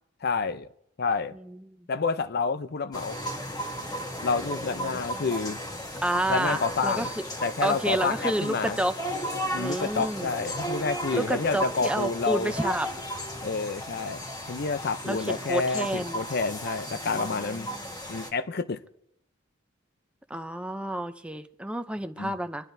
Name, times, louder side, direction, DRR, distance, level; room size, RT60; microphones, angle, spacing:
voice 1, 0.2-0.7 1.0-1.3 1.9-3.2 4.2-5.6 6.3-7.1 7.4-8.8 9.5-12.5 13.4-17.7 18.1-18.8 22.2-22.3, left 4 dB, 55° left, 0.6 m, -29 dB
sound 1, 2.9-18.3, equal, 20° left, 1.5 m, -35 dB
voice 2, 4.9-5.3 6.0-7.2 7.6-8.9 9.6-10.3 11.1-12.9 15.0-16.2 17.2-17.8 20.3-22.7, right 1 dB, 5° right, 0.5 m, -30 dB
26.0 x 11.0 x 2.7 m
head